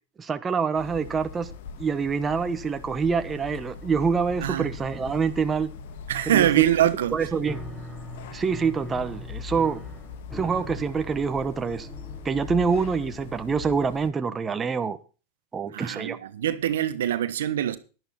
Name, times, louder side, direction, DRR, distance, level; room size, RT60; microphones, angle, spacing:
voice 1, 0.2-1.5 1.8-5.7 6.3-6.5 7.1-7.6 8.3-9.8 10.3-11.9 12.2-15.0 15.5-16.2, right 5 dB, 20° right, 1.1 m, -26 dB
sound 1, 0.7-14.1, left 5 dB, 65° left, 1.6 m, -40 dB
voice 2, 4.4-4.7 6.1-7.1 15.7-17.8, right 11 dB, 75° right, 1.2 m, -24 dB
Piano, 7.5-14.2, right 1 dB, 5° left, 4.1 m, -42 dB
11.0 x 11.0 x 4.2 m
hypercardioid pair, 95°, 0 cm